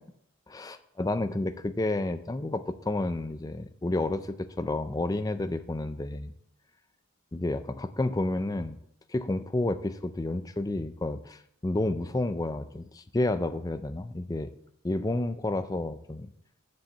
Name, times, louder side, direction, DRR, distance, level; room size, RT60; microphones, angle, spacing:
voice 1, 0.5-6.3 7.3-8.8 9.1-14.5 14.8-16.3, left 2 dB, 15° left, 10 dB, 0.4 m, -30 dB
7.2 x 6.3 x 7.1 m, 0.71 s
head